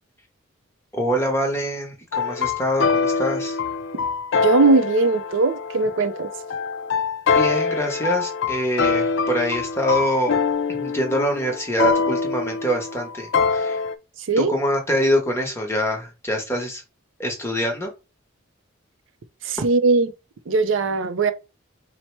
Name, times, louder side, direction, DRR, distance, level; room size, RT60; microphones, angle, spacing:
voice 1, 0.9-3.6 7.3-10.4 10.8-13.8 14.4-16.8 17.2-17.9, equal, 10° left, 0.9 m, -24 dB
sound 1, 2.1-13.9, left 5 dB, 65° left, 0.4 m, -24 dB
voice 2, 4.4-6.3 14.3-14.5 19.4-20.1 20.5-21.3, right 3 dB, 70° right, 0.5 m, -19 dB
4.2 x 2.1 x 4.5 m
head